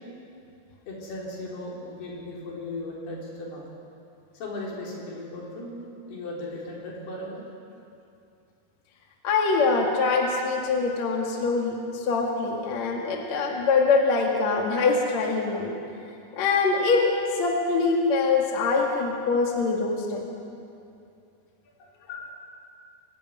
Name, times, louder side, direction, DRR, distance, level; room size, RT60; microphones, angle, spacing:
voice 1, 0.9-3.7 4.3-7.4 21.7-22.3, left 2 dB, 70° left, -3 dB, 5.8 m, -37 dB
voice 2, 9.2-11.7 12.0-15.7 16.4-17.1 17.4-20.2 22.1-22.2, left 4 dB, 50° left, 0 dB, 2.8 m, -24 dB
24.0 x 13.5 x 9.6 m, 2.6 s
omnidirectional pair, 4.8 m